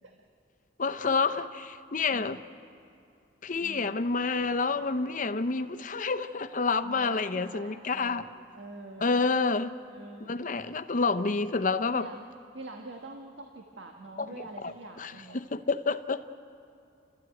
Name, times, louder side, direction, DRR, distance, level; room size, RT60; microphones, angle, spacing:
voice 1, 0.8-2.4 3.4-8.2 9.0-9.7 10.2-12.1 14.6-14.7 15.0-16.2, left 4 dB, 45° left, 0.7 m, -28 dB
voice 2, 3.6-4.0 6.8-9.4 9.9-10.4 11.9-12.3 12.5-15.5, right 2 dB, 90° right, 1.5 m, -45 dB
30.0 x 13.5 x 9.2 m
head